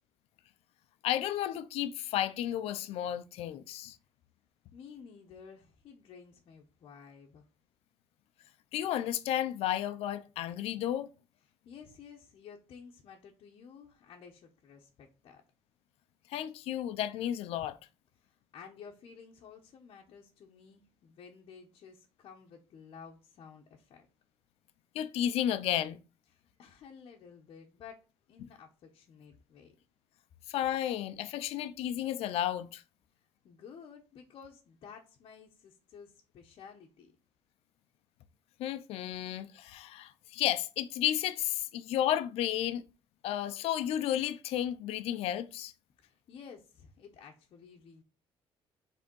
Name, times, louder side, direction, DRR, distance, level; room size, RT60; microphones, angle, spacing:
voice 1, 1.0-4.0 8.7-11.1 16.3-17.8 24.9-26.0 30.5-32.8 38.6-42.8 43.2-45.7, left 11 dB, 80° left, 0.6 m, -32 dB
voice 2, 4.7-7.5 11.6-15.4 18.2-24.1 26.3-29.7 33.1-37.1 46.0-48.0, left 6 dB, 50° left, 1.0 m, -53 dB
5.2 x 3.6 x 5.3 m
cardioid pair, 155°, 10 cm